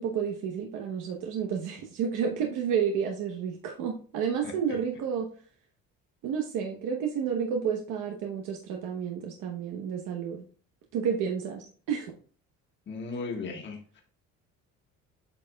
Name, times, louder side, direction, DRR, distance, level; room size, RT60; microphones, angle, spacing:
voice 1, 0.0-5.3 6.2-10.4 10.9-12.1, right 7 dB, 85° right, 2 dB, 1.0 m, -31 dB
voice 2, 4.4-4.8 12.9-14.0, left 4 dB, 35° left, 1 dB, 1.5 m, -37 dB
8.5 x 5.4 x 2.2 m, 0.42 s
cardioid pair, 150°, 30 cm